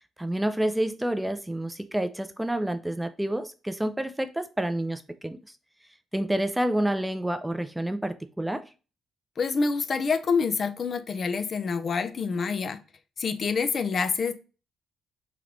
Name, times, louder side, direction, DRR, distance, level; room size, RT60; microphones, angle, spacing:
voice 1, 0.2-5.4 6.1-8.7, right 1 dB, 5° right, 0.3 m, -28 dB
voice 2, 9.4-12.8 13.2-14.3, left 5 dB, 45° left, 0.5 m, -27 dB
3.8 x 3.2 x 3.0 m
cardioid pair, 90°, 0 cm